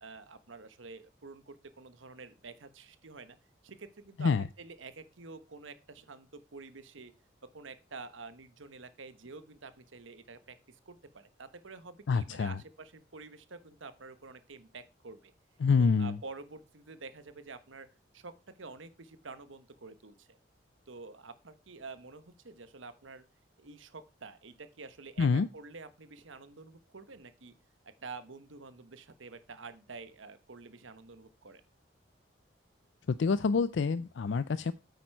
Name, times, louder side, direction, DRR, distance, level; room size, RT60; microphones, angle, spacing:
voice 1, 0.0-3.4 3.6-7.1 7.5-15.3 15.7-17.9 18.1-20.4 20.9-23.2 23.6-27.5 27.8-31.6, right 4 dB, 85° right, 12 dB, 1.1 m, -48 dB
voice 2, 12.1-12.6 15.6-16.1 25.2-25.5 33.1-34.7, left 5 dB, 70° left, 15 dB, 0.4 m, -27 dB
8.9 x 8.2 x 4.6 m, 0.30 s
head